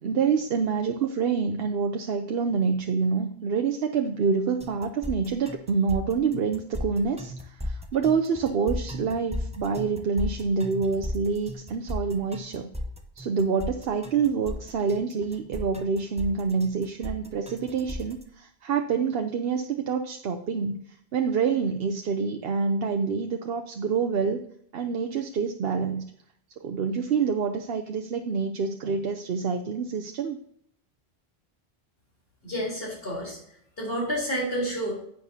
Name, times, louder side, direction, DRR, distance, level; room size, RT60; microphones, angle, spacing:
voice 1, 0.0-12.7 13.2-24.5 24.7-26.0 26.6-30.4, right 5 dB, 65° right, 5 dB, 0.9 m, -27 dB
sound 1, 4.6-18.2, left 1 dB, 5° right, 0.7 m, -36 dB
voice 2, 32.4-33.4 33.8-34.9, equal, 60° left, -4 dB, 4.1 m, -29 dB
10.5 x 8.8 x 2.8 m, 0.69 s
omnidirectional pair, 1.1 m